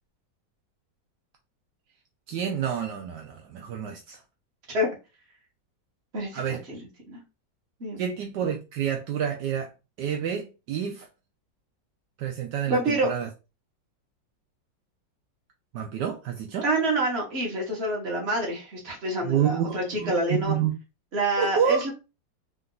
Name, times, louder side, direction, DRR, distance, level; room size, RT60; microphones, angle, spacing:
voice 1, 2.3-4.2 6.3-6.6 8.0-9.7 10.0-11.1 12.2-13.3 15.7-16.7 19.2-20.7 21.4-21.9, right 8 dB, 75° right, 1.2 m, -28 dB
voice 2, 6.1-6.8 7.1-7.2 7.8-8.0 12.7-13.1 16.6-20.5 21.1-21.9, right 1 dB, 35° right, 1.6 m, -27 dB
3.8 x 2.7 x 3.8 m
omnidirectional pair, 2.0 m